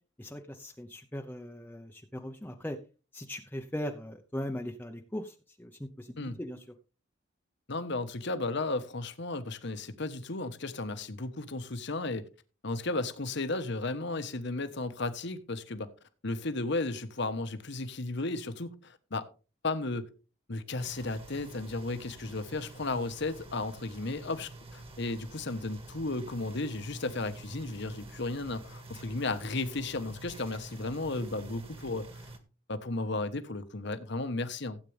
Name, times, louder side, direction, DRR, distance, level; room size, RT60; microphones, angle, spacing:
voice 1, 0.2-2.8 3.1-6.6, left 1 dB, 10° left, 0.8 m, -39 dB
voice 2, 7.7-12.3 12.6-15.9 16.2-19.3 19.6-20.1 20.5-32.1 32.7-34.8, left 2 dB, 65° left, 1.3 m, -34 dB
sound 1, 20.8-32.4, right 2 dB, 30° right, 2.0 m, -48 dB
16.0 x 8.5 x 3.4 m
head